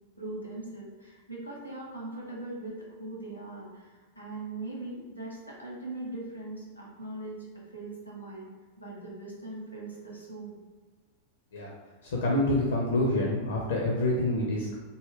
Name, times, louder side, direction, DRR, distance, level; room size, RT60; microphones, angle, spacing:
voice 1, 0.2-8.5 8.8-10.6, right 2 dB, 90° left, -3 dB, 1.0 m, -40 dB
voice 2, 12.0-14.8, left 1 dB, 65° left, -3 dB, 0.5 m, -27 dB
3.5 x 2.1 x 3.6 m, 1.3 s
figure-of-eight pair, 90°, 0 cm